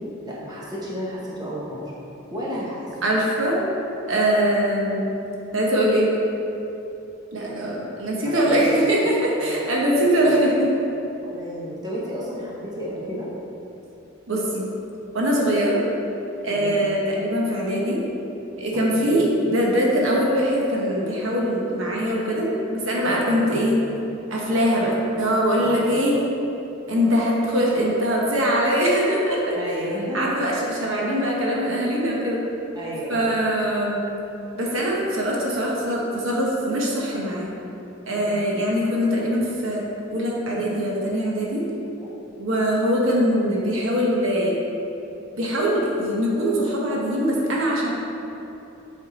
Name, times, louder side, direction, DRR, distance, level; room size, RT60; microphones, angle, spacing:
voice 1, 0.2-1.8 2.3-3.0 8.2-8.8 9.4-9.7 10.2-10.4 11.2-13.3 16.6-16.8 18.7-19.2 23.0-23.6 24.1-24.2 25.6-25.7 29.5-30.3 32.7-33.3 38.1-38.4 42.0-42.1, equal, 20° right, -6 dB, 1.3 m, -32 dB
voice 2, 3.0-3.6 4.1-5.0 5.5-6.1 7.3-10.7 14.3-14.7 15.1-15.8 16.4-18.0 18.6-23.7 24.3-26.1 26.9-29.6 30.0-32.4 33.1-34.0 34.5-37.5 38.1-39.8 40.1-41.6 42.4-44.6 45.3-47.9, equal, 70° right, -3 dB, 1.1 m, -22 dB
7.7 x 4.8 x 4.1 m, 3.0 s
head